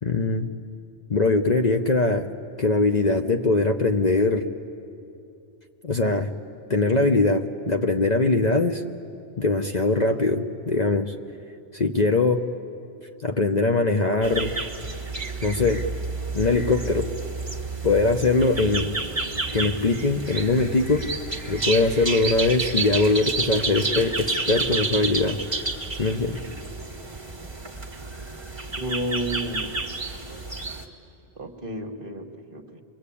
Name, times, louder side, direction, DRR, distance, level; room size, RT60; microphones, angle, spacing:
voice 1, 0.0-0.5 1.1-2.3 2.6-4.5 5.8-6.3 6.7-8.8 9.4-11.1 11.7-12.4 13.2-14.5 15.4-15.8 16.3-17.1 17.8-18.9 19.5-21.1 21.5-25.4 26.0-26.4, left 3 dB, 40° left, 5 dB, 0.9 m, -22 dB
sound 1, 14.2-30.8, right 3 dB, 20° right, 1.6 m, -30 dB
voice 2, 28.8-29.7 31.3-32.8, right 1 dB, 45° right, 5 dB, 1.5 m, -31 dB
27.5 x 22.5 x 8.5 m, 2.6 s
omnidirectional pair, 1.2 m